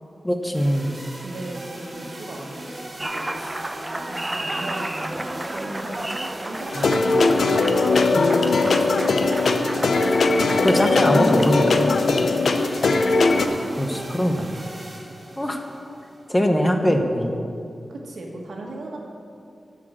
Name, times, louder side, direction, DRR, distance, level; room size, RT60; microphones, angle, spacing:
voice 1, 0.2-0.9 6.8-6.9 10.6-11.9 13.8-14.5 15.4-15.6 16.3-17.4, equal, 15° left, 4 dB, 0.9 m, -22 dB
sound 1, 0.5-16.6, right 1 dB, 40° right, 2.2 m, -39 dB
voice 2, 1.2-3.5 4.1-9.8 12.1-12.6 15.4-15.6 17.9-19.0, right 1 dB, 85° right, -1 dB, 1.6 m, -37 dB
Applause, 3.0-14.8, right 1 dB, 20° right, 0.5 m, -33 dB
sound 2, 6.7-13.5, left 3 dB, 75° left, 0.6 m, -19 dB
9.0 x 6.5 x 7.6 m, 2.6 s
wide cardioid pair, 95°, 0 cm